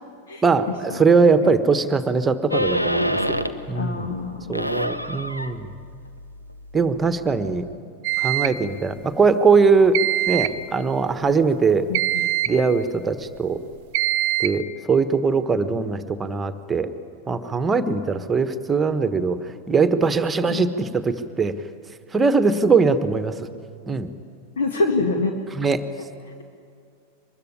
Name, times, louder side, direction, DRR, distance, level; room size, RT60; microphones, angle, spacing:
voice 1, 0.4-4.1 4.5-5.7 6.7-7.6 8.2-10.0 10.3-11.9 12.5-13.6 14.4-16.9 17.3-21.6 22.1-23.5 23.9-24.1 25.5-25.9, right 4 dB, 15° right, 11 dB, 1.3 m, -21 dB
sound 1, 2.5-3.7 4.1-7.7, equal, 90° left, 1.1 m, -28 dB
voice 2, 3.7-4.5 11.9-12.2 20.5-20.7 24.6-25.3, left 3 dB, 60° left, 3 dB, 1.9 m, -25 dB
sound 2, 8.0-8.6 9.9-10.6 11.9-12.6 13.9-14.6, right 15 dB, 50° right, 0.7 m, -23 dB
24.5 x 21.0 x 9.9 m, 2.4 s
figure-of-eight pair, 90°, 0 cm